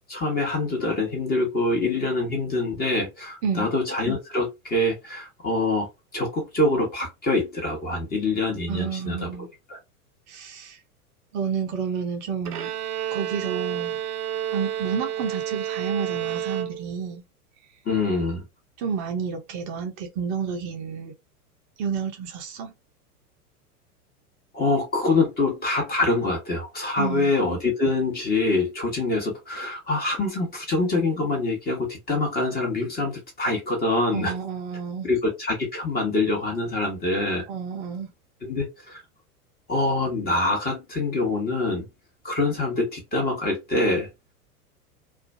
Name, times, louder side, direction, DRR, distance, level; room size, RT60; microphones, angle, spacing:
voice 1, 0.1-5.9 6.1-9.8 17.8-18.4 24.5-34.4 35.0-37.5 38.4-39.0 39.7-41.9 42.2-44.1, left 2 dB, 20° left, 1.0 m, -25 dB
voice 2, 8.7-9.5 10.3-10.8 11.3-12.7 13.1-14.0 14.5-17.2 18.8-21.1 21.8-22.7 27.0-27.3 34.1-35.1 37.5-38.1, right 6 dB, 30° right, 0.5 m, -30 dB
Bowed string instrument, 12.4-17.2, right 10 dB, 75° right, 0.6 m, -30 dB
2.4 x 2.2 x 2.5 m
figure-of-eight pair, 95°, 45 cm